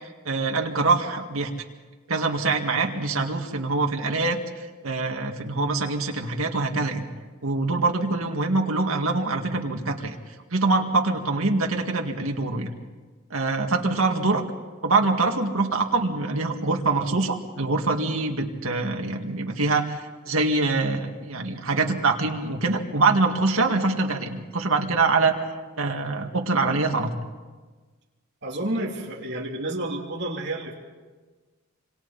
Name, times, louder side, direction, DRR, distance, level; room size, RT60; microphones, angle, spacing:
voice 1, 0.3-1.5 2.1-7.0 7.4-10.1 10.5-12.7 13.3-14.4 14.8-25.4 25.8-27.1, right 3 dB, 90° right, 3 dB, 2.1 m, -24 dB
voice 2, 28.4-30.7, right 1 dB, 55° right, -2 dB, 3.2 m, -30 dB
26.5 x 26.5 x 4.2 m, 1.3 s
head